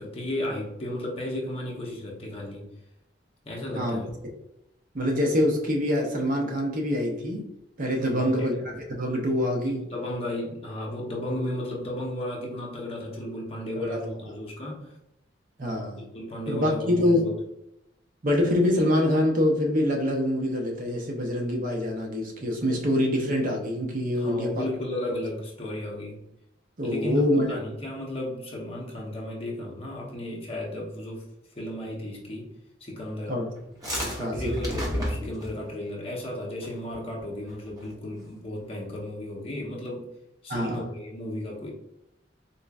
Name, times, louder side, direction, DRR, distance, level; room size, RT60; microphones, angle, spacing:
voice 1, 0.0-2.7 3.4-4.1 8.0-8.6 9.7-14.9 16.0-17.4 24.2-26.2 26.8-31.2 31.6-32.5 32.8-33.4 34.0-40.1 40.4-41.7, left 1 dB, 30° left, 0.8 m, -34 dB
voice 2, 4.9-7.5 7.8-8.5 8.9-9.9 13.7-14.3 15.6-16.0 16.5-17.2 18.2-24.7 26.8-27.6 33.3-33.5 34.2-34.5 40.5-40.9, left 1 dB, 45° right, 0.7 m, -25 dB
sound 1, 33.6-35.6 36.6-36.9 37.2-37.3 37.5-37.9, equal, 20° right, 1.0 m, -31 dB
3.8 x 3.1 x 2.3 m
head